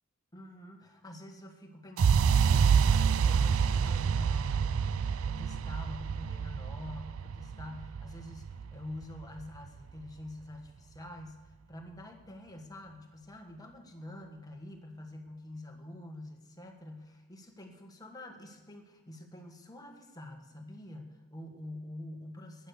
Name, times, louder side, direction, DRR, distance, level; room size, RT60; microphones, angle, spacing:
voice 1, 0.3-4.9 5.2-22.7, left 1 dB, 20° left, 3 dB, 1.7 m, -46 dB
sound 1, 2.0-9.9, right 6 dB, 80° right, 0.4 m, -27 dB
15.0 x 9.7 x 6.7 m, 1.2 s
head